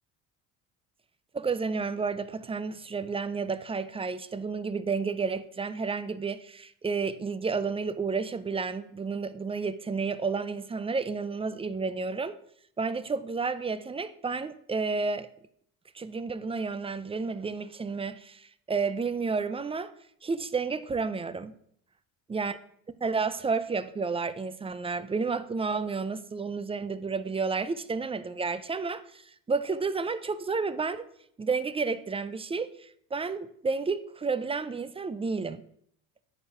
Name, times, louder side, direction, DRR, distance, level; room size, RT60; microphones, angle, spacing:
voice 1, 1.3-12.3 12.8-15.3 15.9-19.9 20.2-21.5 22.3-22.6 23.0-31.0 31.4-35.6, right 4 dB, 15° right, 0.5 m, -31 dB
9.9 x 4.6 x 4.9 m
supercardioid pair, 95°, 36 cm